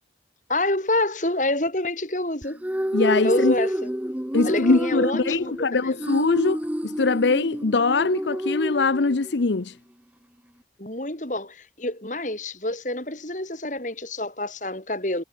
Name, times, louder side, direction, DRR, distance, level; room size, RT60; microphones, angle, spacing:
voice 1, 0.5-2.6 3.2-3.7 4.4-6.0 10.8-15.2, left 1 dB, 45° left, 4.0 m, -27 dB
sound 1, 2.4-9.5, equal, 10° right, 0.8 m, -28 dB
voice 2, 2.9-3.5 4.3-9.8, left 3 dB, 85° left, 0.7 m, -22 dB
head